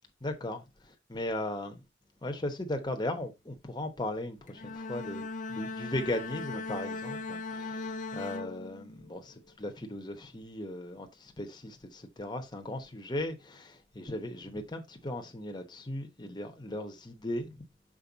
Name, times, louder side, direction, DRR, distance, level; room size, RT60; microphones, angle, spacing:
voice 1, 0.2-0.6 1.1-1.8 2.2-5.2 5.5-17.6, left 1 dB, 25° left, 1.0 m, -37 dB
Bowed string instrument, 4.5-9.1, left 3 dB, 45° left, 0.7 m, -39 dB
6.2 x 4.6 x 3.9 m
head